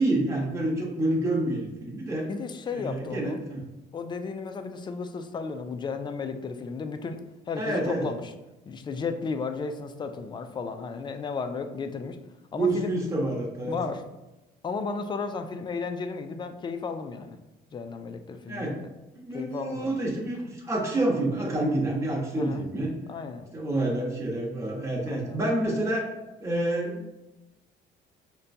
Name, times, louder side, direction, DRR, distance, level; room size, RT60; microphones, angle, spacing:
voice 1, 0.0-2.3 2.7-3.6 7.6-8.0 12.5-13.8 18.5-18.8 19.2-22.9 23.5-26.1 26.4-27.1, right 1 dB, 15° right, -3 dB, 1.0 m, -28 dB
voice 2, 2.3-3.4 3.9-7.2 7.5-8.3 8.7-12.2 12.5-12.9 13.7-14.0 14.6-17.4 17.7-18.9 19.3-20.0 22.4-22.6 23.1-23.5 25.1-25.4, left 4 dB, 25° left, 7 dB, 0.3 m, -34 dB
5.4 x 2.2 x 2.6 m, 1.0 s
cardioid pair, 110°, 17 cm